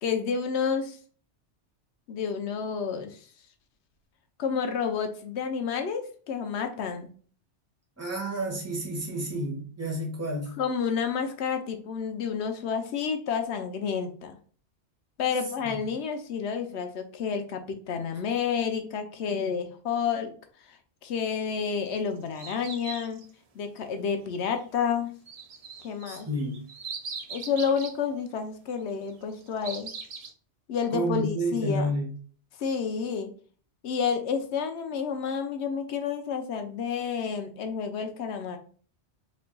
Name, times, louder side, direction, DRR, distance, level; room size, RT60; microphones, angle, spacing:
voice 1, 0.0-1.0 2.1-3.2 4.4-7.1 10.6-14.4 15.2-20.3 20.7-20.8 21.0-23.2 23.5-25.1 25.8-26.3 27.3-29.9 30.7-31.9 32.6-33.3 33.8-38.6, left 6 dB, 75° left, 0.9 m, -30 dB
voice 2, 8.0-10.6 26.0-26.6 30.9-32.1, right 1 dB, 15° right, 1.0 m, -30 dB
sound 1, 21.7-23.3 25.3-28.0 29.1-30.3, right 5 dB, 50° right, 0.4 m, -40 dB
4.0 x 3.3 x 2.2 m
omnidirectional pair, 1.2 m